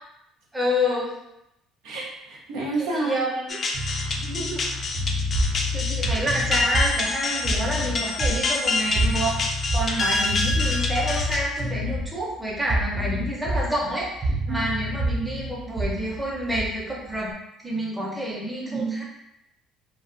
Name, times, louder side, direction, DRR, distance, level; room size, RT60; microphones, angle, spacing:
voice 1, 0.5-1.1 2.8-3.5 4.3-5.0 5.7-17.3 17.6-19.0, equal, 5° right, -4 dB, 0.7 m, -28 dB
voice 2, 1.8-3.2 3.5-3.9 4.2-4.4 14.5-14.6 18.6-19.0, right 2 dB, 85° right, -3 dB, 0.7 m, -30 dB
sound 1, 3.5-11.8, left 3 dB, 40° left, 0.3 m, -27 dB
sound 2, 3.7-6.8 7.6-8.0 9.0-12.1 12.9-13.3 14.3-15.5, left 3 dB, 55° right, 0.8 m, -30 dB
sound 3, 5.3-17.3, right 2 dB, 35° right, 0.4 m, -29 dB
2.3 x 2.3 x 2.5 m, 0.84 s
cardioid pair, 100°, 0 cm